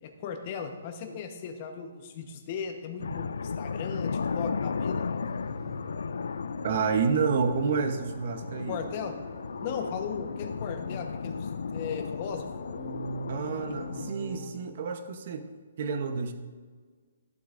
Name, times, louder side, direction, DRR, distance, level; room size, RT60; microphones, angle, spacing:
voice 1, 0.0-5.1 8.7-9.1 9.6-12.5, left 6 dB, 35° left, 5 dB, 1.0 m, -37 dB
sound 1, 3.0-14.1, left 5 dB, 80° left, 0.3 m, -35 dB
sound 2, 4.9-14.5, right 2 dB, 5° right, 1.2 m, -45 dB
voice 2, 6.6-8.8 13.3-15.5 15.8-16.3, right 5 dB, 50° right, 8 dB, 0.8 m, -29 dB
14.5 x 7.7 x 2.5 m, 1.5 s
hypercardioid pair, 160°, 0 cm